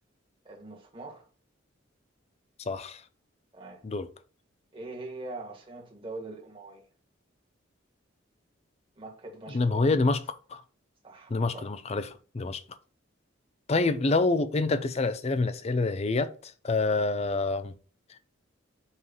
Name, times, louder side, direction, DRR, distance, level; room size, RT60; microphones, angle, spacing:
voice 1, 0.4-1.3 3.5-3.8 4.7-6.8 9.0-10.1 11.0-11.7, right 2 dB, 25° right, 1.8 m, -42 dB
voice 2, 2.7-3.0 3.8-4.1 9.5-10.2 10.5-10.6 11.3-12.6 13.7-17.7 18.1-18.2, left 3 dB, 30° left, 0.5 m, -27 dB
5.4 x 3.2 x 5.4 m
head